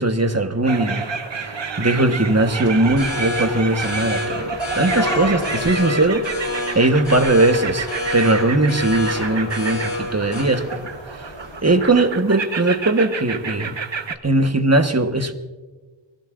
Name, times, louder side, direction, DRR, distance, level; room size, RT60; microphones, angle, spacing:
voice 1, 0.0-4.5 4.8-6.2 6.7-10.8 11.1-11.3 11.6-13.8 14.2-15.3, right 2 dB, 35° right, 7 dB, 1.3 m, -19 dB
sound 1, 0.6-14.2, right 5 dB, 70° right, 1.0 m, -30 dB
sound 2, 2.3-11.9, left 2 dB, 85° left, 4.8 m, -28 dB
23.5 x 17.0 x 2.5 m, 1.3 s
wide cardioid pair, 45°, 46 cm